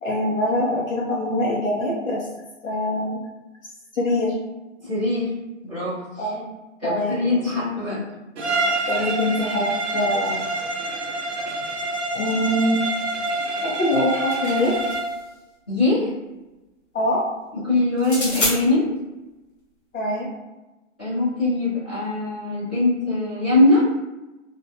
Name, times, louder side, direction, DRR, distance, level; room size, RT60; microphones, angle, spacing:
voice 1, 0.0-2.3 2.6-3.2 3.9-4.3 6.2-6.5 6.8-7.6 8.9-10.4 12.1-12.8 13.6-14.8 16.9-17.2 19.9-20.3, left 1 dB, 80° left, -4 dB, 0.8 m, -24 dB
voice 2, 4.8-5.3 5.6-6.0 6.8-8.0 15.7-16.1 17.5-18.9 21.0-23.8, left 2 dB, 5° left, -20 dB, 0.6 m, -21 dB
Bowed string instrument, 8.4-15.2, right 2 dB, 60° right, 0.7 m, -27 dB
sound 1, 13.9-15.2 18.0-18.6, left 2 dB, 40° left, 1.0 m, -28 dB
2.5 x 2.2 x 2.6 m, 1.1 s
hypercardioid pair, 170°, 39 cm